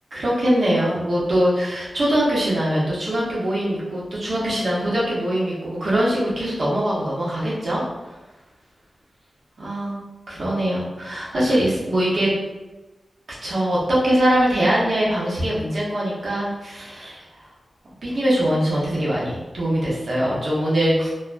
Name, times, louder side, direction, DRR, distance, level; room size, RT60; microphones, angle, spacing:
voice 1, 0.1-7.8 9.6-10.0 10.3-12.3 13.4-17.3 18.0-21.1, equal, 55° right, -7 dB, 0.9 m, -22 dB
2.6 x 2.2 x 2.5 m, 1.1 s
wide cardioid pair, 115°, 0 cm